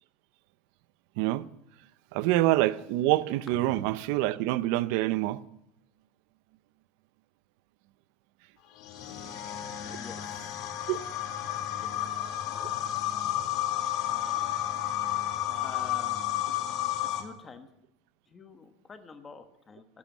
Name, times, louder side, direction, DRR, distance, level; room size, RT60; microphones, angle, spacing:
voice 1, 2.1-5.4 10.9-11.0, right 16 dB, 60° right, 0.7 m, -26 dB
sound 1, 8.8-17.2, left 12 dB, 50° left, 2.2 m, -32 dB
voice 2, 9.0-9.6 9.8-10.2 11.8-11.9 12.4-12.7 13.3-13.4 15.6-16.3 17.0-17.7 18.3-19.9, left 4 dB, 15° left, 1.3 m, -47 dB
14.5 x 12.0 x 7.3 m
cardioid pair, 165°, 0 cm